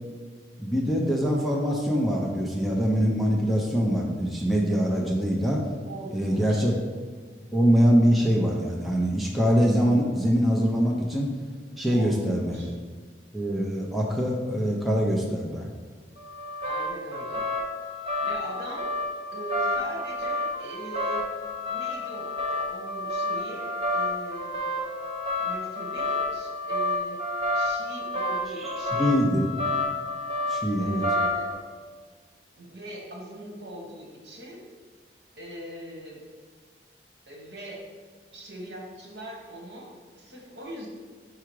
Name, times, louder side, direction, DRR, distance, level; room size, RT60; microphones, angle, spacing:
voice 1, 0.6-5.6 6.1-6.7 7.5-11.3 11.7-12.7 13.3-15.7 28.6-29.5 30.5-31.0, equal, ahead, -3 dB, 0.6 m, -24 dB
voice 2, 5.8-6.7 11.9-12.7 16.6-17.4 18.2-18.9 19.3-21.2 21.7-24.5 25.4-27.2 27.5-29.2 30.8-31.5 32.6-34.7 35.4-36.2 37.3-37.8 38.3-40.9, right 1 dB, 70° right, -1 dB, 1.4 m, -41 dB
sound 1, 16.2-31.5, left 2 dB, 30° right, 1.2 m, -30 dB
4.8 x 4.7 x 4.7 m, 1.6 s
head